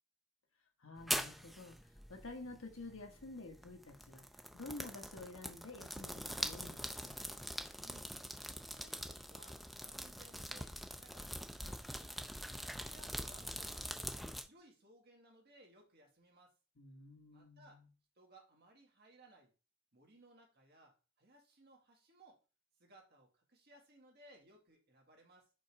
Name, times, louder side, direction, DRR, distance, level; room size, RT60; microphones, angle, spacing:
voice 1, 0.8-1.8 2.1-4.2 4.5-7.4 14.2-14.4 16.8-17.8, left 2 dB, 70° left, 1.3 m, -50 dB
sound 1, 1.0-14.4, equal, ahead, 0.5 m, -44 dB
voice 2, 7.7-8.1 8.5-13.8 14.4-16.5 17.3-17.8 18.2-19.5 19.9-22.4 22.8-25.5, right 1 dB, 50° right, 2.0 m, -63 dB
5.2 x 3.8 x 4.8 m
head